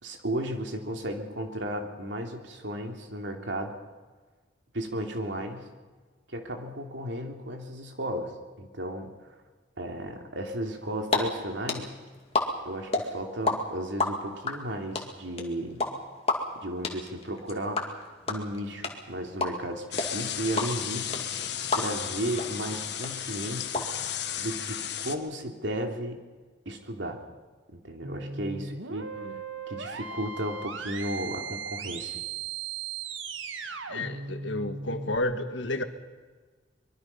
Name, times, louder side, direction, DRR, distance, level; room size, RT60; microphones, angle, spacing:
voice 1, 0.0-3.7 4.7-5.7 6.3-9.1 9.8-11.9 12.6-15.9 16.6-23.8 24.4-26.2 26.6-27.2 27.7-29.1 29.7-32.2, right 1 dB, 75° right, 3 dB, 3.1 m, -34 dB
sound 1, 10.8-11.2 11.4-13.5 13.8-22.1 22.4-22.5 22.7-23.8, left 3 dB, 30° left, 2.5 m, -28 dB
sound 2, 19.9-25.1, left 9 dB, 65° left, 1.5 m, -34 dB
sound 3, 28.0-35.2, right 5 dB, 90° right, 1.9 m, -37 dB
voice 2, 33.6-35.8, left 2 dB, 80° left, 8 dB, 1.7 m, -32 dB
25.0 x 22.5 x 5.7 m, 1.4 s
head